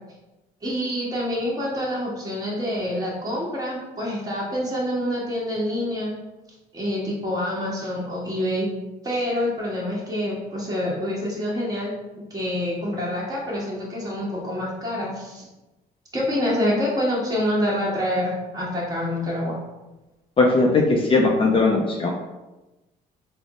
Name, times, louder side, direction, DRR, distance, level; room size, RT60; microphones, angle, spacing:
voice 1, 0.6-6.1 6.7-8.7 9.0-11.9 12.3-15.4 16.1-19.6, left 1 dB, 20° right, -5 dB, 1.3 m, -26 dB
voice 2, 20.4-22.1, left 3 dB, 30° left, -1 dB, 0.4 m, -19 dB
3.6 x 2.0 x 3.5 m, 1.1 s
cardioid pair, 110°, 17 cm